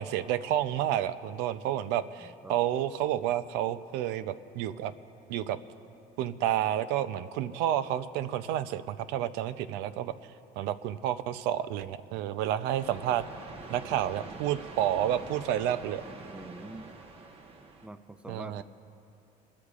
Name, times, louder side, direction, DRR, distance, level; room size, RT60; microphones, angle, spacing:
voice 1, 0.0-4.9 5.3-5.6 6.2-10.1 10.6-13.2 13.7-16.0 18.3-18.6, right 11 dB, 90° right, 13 dB, 0.5 m, -30 dB
voice 2, 2.2-2.5 16.2-17.0 17.8-18.6, right 1 dB, 5° right, 10 dB, 0.5 m, -45 dB
sound 1, 12.8-17.9, right 3 dB, 35° right, 1.1 m, -45 dB
30.0 x 13.0 x 2.5 m, 2.7 s
cardioid pair, 135°, 17 cm